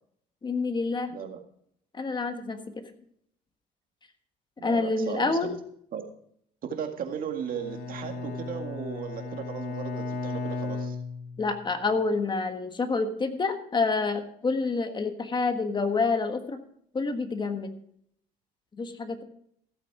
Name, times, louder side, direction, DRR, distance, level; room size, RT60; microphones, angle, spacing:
voice 1, 0.4-1.1 1.9-2.6 4.6-5.5 11.4-16.6 16.9-17.7 18.8-19.2, left 3 dB, 25° left, 7 dB, 1.5 m, -28 dB
voice 2, 1.1-1.4 4.6-5.6 5.9-6.0 6.6-11.0, right 7 dB, 55° right, 5 dB, 2.0 m, -36 dB
Bowed string instrument, 7.4-11.7, left 3 dB, 65° left, 2.8 m, -35 dB
15.0 x 8.5 x 4.7 m, 0.67 s
cardioid pair, 110°, 17 cm